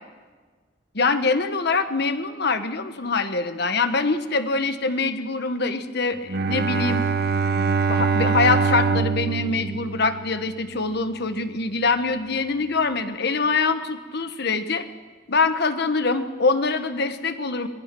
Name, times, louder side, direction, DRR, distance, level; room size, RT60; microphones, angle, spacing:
voice 1, 0.9-7.0 7.7-14.8 15.3-17.7, left 4 dB, 60° left, 10 dB, 1.3 m, -24 dB
Bowed string instrument, 6.3-10.7, right 5 dB, 55° right, 0.7 m, -24 dB
25.5 x 20.0 x 6.1 m, 1.4 s
head